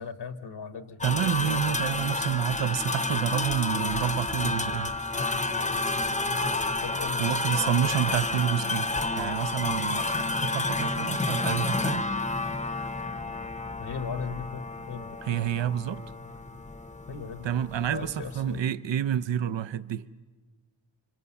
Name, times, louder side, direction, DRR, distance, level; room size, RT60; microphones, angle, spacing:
voice 1, 0.0-1.0 6.8-8.1 13.8-15.2 17.1-17.5 17.9-18.6, left 5 dB, 60° left, 1.1 m, -38 dB
sound 1, 1.0-18.6, left 2 dB, 15° left, 0.8 m, -30 dB
voice 2, 1.0-4.9 7.2-12.1 15.2-16.0 17.4-20.0, right 10 dB, 70° right, 0.7 m, -29 dB
28.5 x 25.5 x 7.1 m
wide cardioid pair, 165°, 46 cm